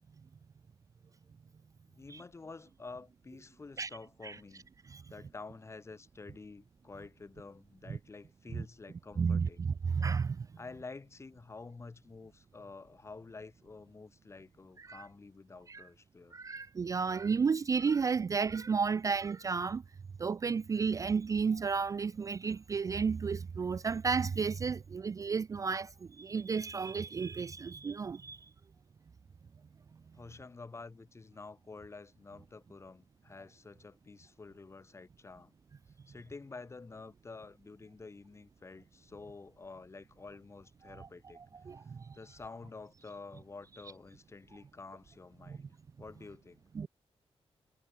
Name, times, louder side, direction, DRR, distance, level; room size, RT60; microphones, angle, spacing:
voice 1, 1.9-4.7 5.1-9.6 10.6-16.4 30.1-35.5 36.1-41.4 42.1-46.7, left 3 dB, 25° left, 2.2 m, -49 dB
voice 2, 9.2-10.5 14.8-15.1 15.7-15.8 16.3-19.8 20.2-28.5 40.8-41.1 41.4-42.2 45.5-45.6 46.7-46.9, right 5 dB, 30° right, 0.4 m, -33 dB
wide cardioid pair, 165°, 11 cm